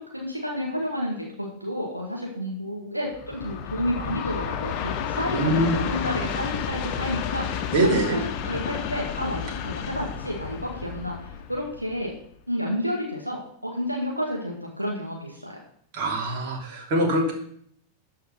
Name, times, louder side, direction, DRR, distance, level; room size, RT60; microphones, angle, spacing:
voice 1, 0.1-7.6 7.8-12.1 12.5-15.6, equal, 90° right, -2 dB, 1.8 m, -30 dB
Train, 3.1-12.3, left 8 dB, 40° left, 1.0 m, -31 dB
voice 2, 5.3-5.8 7.7-8.2 15.9-17.3, right 1 dB, 45° right, -1 dB, 3.3 m, -23 dB
12.5 x 4.8 x 5.9 m, 0.66 s
figure-of-eight pair, 90°, 0 cm